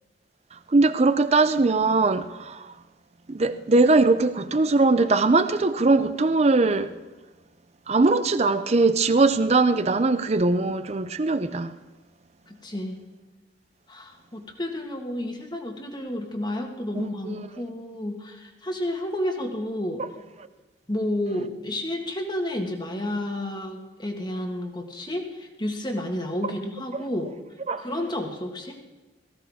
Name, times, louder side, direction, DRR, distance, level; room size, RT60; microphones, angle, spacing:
voice 1, 0.7-2.7 3.3-6.9 7.9-11.8 17.0-17.5 27.7-27.8, right 3 dB, 35° right, 0.5 m, -21 dB
voice 2, 12.5-13.0 13.9-20.0 20.9-27.3 27.8-28.8, left 1 dB, 25° left, 1.6 m, -31 dB
18.0 x 15.5 x 3.6 m
head